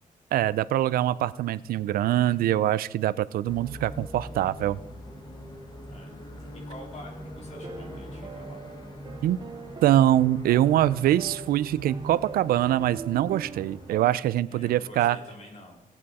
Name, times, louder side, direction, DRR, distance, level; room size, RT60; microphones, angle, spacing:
voice 1, 0.3-4.8 9.2-9.4 9.8-15.2, right 13 dB, 90° right, 18 dB, 0.4 m, -24 dB
sound 1, 3.4-13.9, equal, 30° left, 1.4 m, -43 dB
voice 2, 5.9-8.6 14.5-15.8, left 1 dB, 50° left, 0 dB, 3.1 m, -47 dB
sound 2, 7.5-14.2, right 6 dB, 30° right, 0.4 m, -43 dB
17.0 x 8.9 x 4.2 m, 0.98 s
cardioid pair, 145°, 15 cm